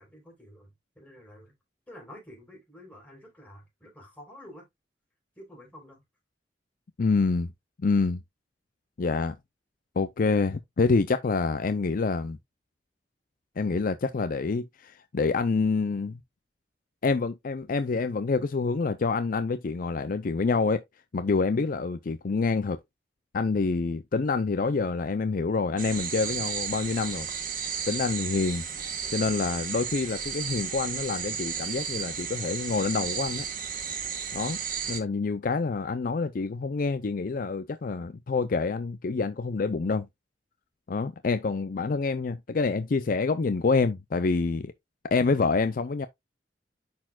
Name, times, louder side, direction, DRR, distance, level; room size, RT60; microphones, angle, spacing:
voice 1, 0.0-1.5 1.9-4.7 5.4-6.0, left 1 dB, 10° left, 4.0 m, -49 dB
voice 2, 7.0-7.5 7.8-8.2 9.0-9.4 10.0-12.4 13.6-16.2 17.0-20.8 21.1-22.8 23.3-27.3 27.9-28.6 29.1-33.5 34.3-34.6 34.9-40.1 40.9-44.7 45.1-46.1, left 4 dB, 55° left, 0.5 m, -27 dB
sound 1, 25.8-35.0, right 7 dB, 50° right, 1.4 m, -33 dB
10.5 x 4.3 x 2.3 m
head